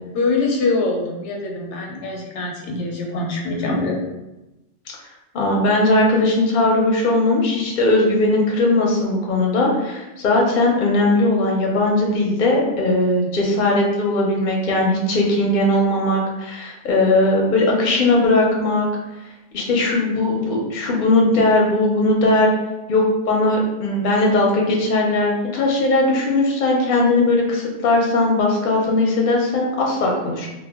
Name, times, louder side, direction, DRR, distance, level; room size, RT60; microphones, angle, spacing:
voice 1, 0.1-4.0, left 3 dB, 80° left, 0 dB, 0.9 m, -23 dB
voice 2, 5.3-18.9 19.5-22.5 22.9-30.5, left 2 dB, 50° left, -1 dB, 0.6 m, -18 dB
2.1 x 2.1 x 3.4 m, 0.99 s
omnidirectional pair, 1.2 m